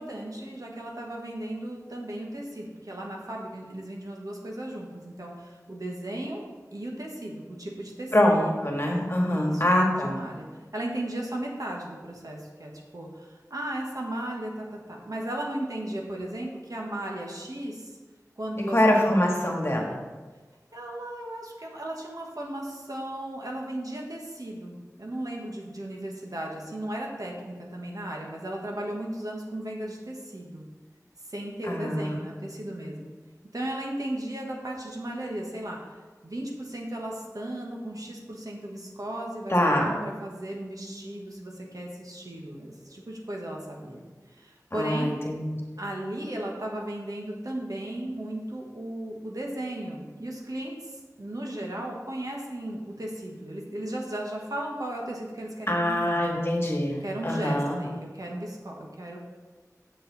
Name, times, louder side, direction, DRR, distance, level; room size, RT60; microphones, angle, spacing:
voice 1, 0.0-6.4 6.7-9.6 9.9-10.5 10.7-18.0 18.4-19.0 20.7-30.6 31.3-33.1 33.5-35.8 36.2-44.0 44.3-45.2 45.8-56.2 57.0-59.2, right 1 dB, 65° right, -1 dB, 1.4 m, -36 dB
voice 2, 8.1-10.2 18.7-20.0 31.7-32.2 39.5-39.9 44.7-45.5 55.7-57.8, left 1 dB, 40° left, -1 dB, 1.6 m, -24 dB
7.0 x 6.6 x 4.0 m, 1.3 s
wide cardioid pair, 45°, 6 cm